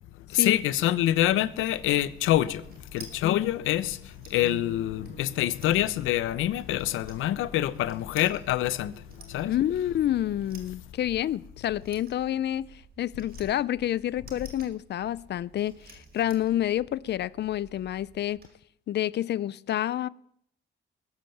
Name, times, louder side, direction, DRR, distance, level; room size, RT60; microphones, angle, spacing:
voice 1, 0.3-9.5, left 13 dB, 90° left, 0.8 m, -26 dB
sound 1, 0.8-3.1 3.4-8.9 9.1-9.5 9.8-9.9 10.1-12.7 13.0-16.6, right 1 dB, 80° right, 7.6 m, -52 dB
sound 2, 2.3-18.5, right 3 dB, 50° right, 5.3 m, -53 dB
voice 2, 3.2-3.5 9.4-18.4 18.9-20.1, left 12 dB, 60° left, 0.5 m, -28 dB
20.5 x 7.2 x 7.8 m
cardioid pair, 90°, 20 cm